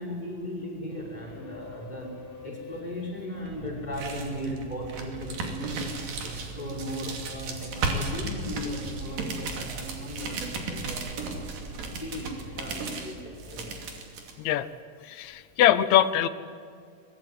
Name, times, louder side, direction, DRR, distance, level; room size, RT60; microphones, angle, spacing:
voice 1, 0.0-5.9 6.2-11.3 11.7-13.7 14.2-14.3, equal, 10° left, -1 dB, 5.5 m, -37 dB
sound 1, 0.9-13.9, left 2 dB, 35° left, 0.8 m, -48 dB
sound 2, 3.5-14.3, right 3 dB, 90° right, 4.4 m, -35 dB
voice 2, 15.0-16.3, left 11 dB, 70° left, 14 dB, 1.8 m, -22 dB
23.0 x 19.5 x 9.6 m, 2.3 s
omnidirectional pair, 3.9 m